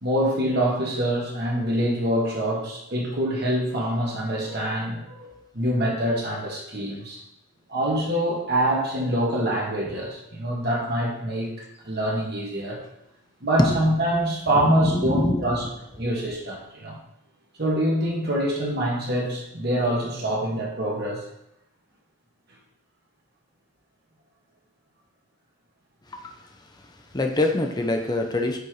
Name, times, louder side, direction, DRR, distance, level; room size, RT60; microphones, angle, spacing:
voice 1, 0.0-7.2 7.7-12.8 13.4-15.6 15.9-17.0 17.6-21.2, right 1 dB, 50° right, -2 dB, 1.8 m, -25 dB
voice 2, 14.5-15.4 26.1-26.3 27.1-28.6, left 2 dB, 20° left, 4 dB, 0.7 m, -25 dB
6.9 x 4.3 x 4.9 m, 0.83 s
head